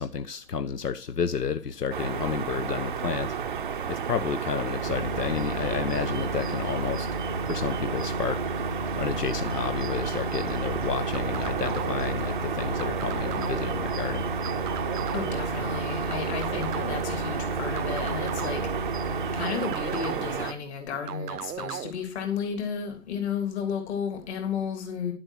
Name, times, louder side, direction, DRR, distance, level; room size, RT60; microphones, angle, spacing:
voice 1, 0.0-3.3 3.9-7.1 7.5-8.4 9.0-14.3, left 6 dB, 85° left, 1.0 m, -31 dB
sound 1, 1.9-20.5, right 7 dB, 35° right, 0.5 m, -32 dB
sound 2, 4.8-19.4, equal, 5° left, 0.7 m, -34 dB
acid riff, 11.1-12.2 12.8-13.8 14.4-15.5 16.1-17.1 17.8-18.8 19.4-20.5 21.1-21.9, right 9 dB, 80° right, 0.7 m, -36 dB
voice 2, 15.1-18.6 19.3-25.1, left 7 dB, 45° left, 3.3 m, -32 dB
11.0 x 7.7 x 4.5 m
hypercardioid pair, 145°, 46 cm